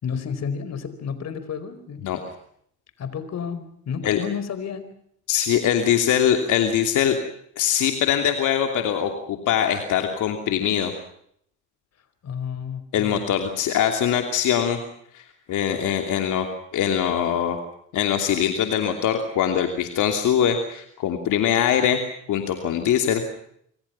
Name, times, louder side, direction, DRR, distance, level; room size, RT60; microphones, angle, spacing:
voice 1, 0.0-2.0 3.0-4.9 12.2-13.2, left 6 dB, 60° left, 12 dB, 4.7 m, -31 dB
voice 2, 5.3-7.2 7.6-10.9 12.9-14.8 15.1-17.6 17.9-22.0 22.3-23.2, left 9 dB, 85° left, 5 dB, 2.9 m, -22 dB
26.0 x 25.5 x 5.7 m, 0.68 s
cardioid pair, 90°, 30 cm